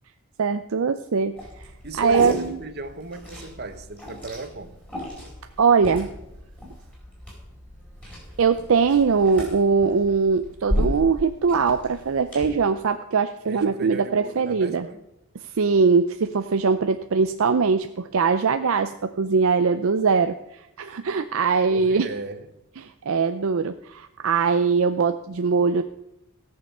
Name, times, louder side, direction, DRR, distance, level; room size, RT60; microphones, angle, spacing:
voice 1, 0.4-1.4 2.0-2.6 5.6-6.1 8.4-14.9 15.4-22.1 22.8-25.8, right 5 dB, 65° right, 8 dB, 0.5 m, -21 dB
Liquid, 1.4-12.5, equal, 5° left, 4.8 m, -34 dB
voice 2, 1.8-4.8 13.5-15.0 21.7-22.5, right 2 dB, 45° right, 9 dB, 1.0 m, -35 dB
17.0 x 6.8 x 5.5 m, 0.87 s
head